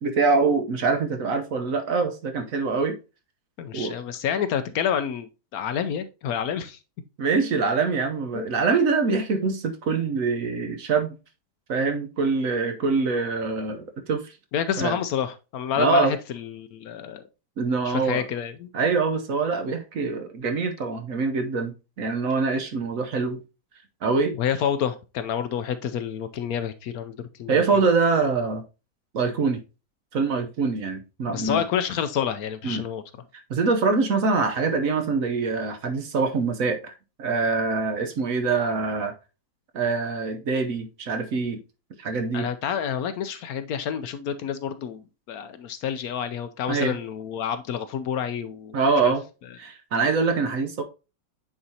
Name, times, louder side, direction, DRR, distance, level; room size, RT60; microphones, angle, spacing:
voice 1, 0.0-3.0 3.7-4.0 7.2-11.2 11.7-14.3 14.8-15.0 15.7-16.2 17.6-18.3 18.7-23.4 24.0-24.6 27.5-28.6 29.1-29.6 30.1-31.6 32.6-32.8 33.5-36.9 37.2-39.1 39.7-41.6 42.0-42.5 46.7-47.0 48.7-49.2 49.6-50.8, right 4 dB, 60° right, 1.1 m, -24 dB
voice 2, 3.6-6.8 8.3-8.5 14.5-17.2 17.8-18.7 24.3-27.6 31.3-33.0 42.3-48.8 49.0-49.1, left 8 dB, 70° left, 1.0 m, -28 dB
8.7 x 4.0 x 2.8 m
omnidirectional pair, 1.8 m